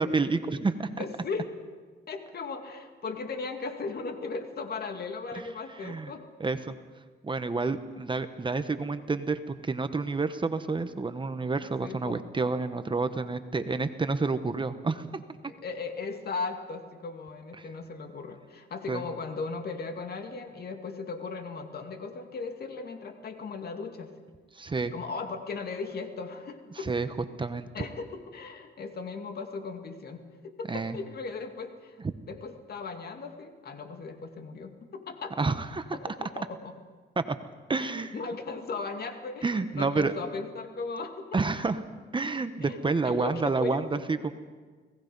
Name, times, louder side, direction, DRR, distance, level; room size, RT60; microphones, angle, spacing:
voice 1, 0.0-0.9 5.8-6.1 6.4-6.7 7.2-15.2 17.6-17.7 18.9-19.0 24.5-24.9 26.9-27.1 27.4-27.7 30.7-31.0 35.4-36.0 37.2-37.4 37.7-38.2 39.4-40.1 41.3-41.8 42.1-44.3, right 3 dB, 25° right, 10 dB, 1.1 m, -29 dB
voice 2, 1.0-1.5 2.1-6.2 7.6-7.8 11.8-12.3 15.5-24.1 24.9-26.9 27.7-32.0 32.3-35.4 35.9-36.7 37.8-41.4 42.6-44.0, left 4 dB, 50° left, 6 dB, 2.3 m, -37 dB
29.5 x 18.0 x 5.4 m, 1.4 s
cardioid pair, 90°, 20 cm